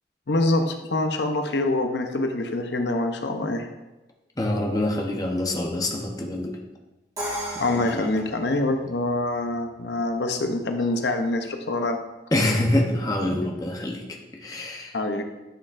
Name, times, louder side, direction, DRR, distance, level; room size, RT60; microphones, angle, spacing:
voice 1, 0.3-3.7 7.6-12.0 14.9-15.2, left 2 dB, 75° left, 6 dB, 0.7 m, -25 dB
voice 2, 4.4-6.6 7.7-8.0 12.3-14.0 14.4-15.0, left 1 dB, 20° left, 1 dB, 0.8 m, -25 dB
Crash cymbal, 7.2-9.1, equal, 20° right, 2.1 m, -34 dB
10.5 x 6.4 x 2.5 m, 1.1 s
head